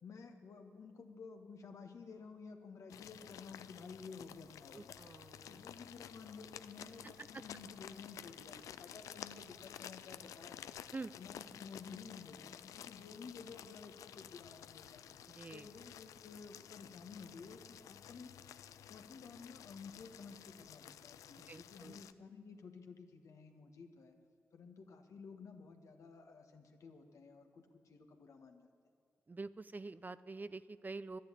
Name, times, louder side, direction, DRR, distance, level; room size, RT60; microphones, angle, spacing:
voice 1, 0.0-5.0 5.4-10.7 11.2-15.0 15.5-18.3 18.9-24.1 24.5-28.7, left 5 dB, 75° left, 5 dB, 1.5 m, -53 dB
sound 1, 2.9-22.1, left 10 dB, 90° left, 0.4 m, -53 dB
voice 2, 4.7-5.7 7.0-7.4 10.9-11.1 15.3-15.7 21.5-22.0 29.3-31.2, right 3 dB, 35° right, 15 dB, 0.5 m, -47 dB
11.5 x 10.5 x 9.9 m, 2.4 s
supercardioid pair, 45°, 5 cm